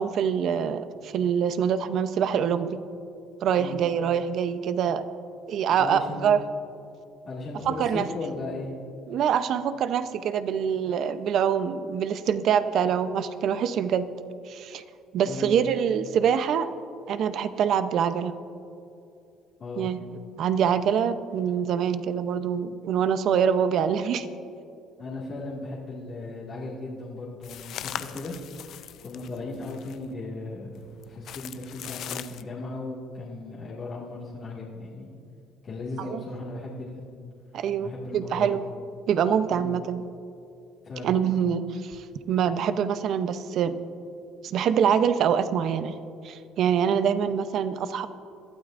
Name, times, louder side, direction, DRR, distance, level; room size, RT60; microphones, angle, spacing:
voice 1, 0.0-2.8 3.4-5.0 5.5-6.4 7.6-8.1 9.1-14.1 14.5-14.8 15.1-16.7 17.1-18.3 19.8-20.0 20.4-24.3 36.0-36.2 37.5-38.6 39.1-40.0 41.0-43.8 44.4-46.0 46.2-48.1, right 8 dB, 55° right, 12 dB, 0.6 m, -25 dB
voice 2, 5.7-6.3 7.2-8.7 15.2-15.7 19.6-19.9 25.0-28.3 29.0-30.8 31.1-35.1 35.6-37.0 37.8-38.6 39.5-39.7 40.8-41.2, left 2 dB, 40° left, -7 dB, 2.0 m, -36 dB
sound 1, 27.4-30.1 30.8-32.4, left 11 dB, 60° left, 0.4 m, -40 dB
21.5 x 12.0 x 2.5 m, 2.6 s
cardioid pair, 120°, 0 cm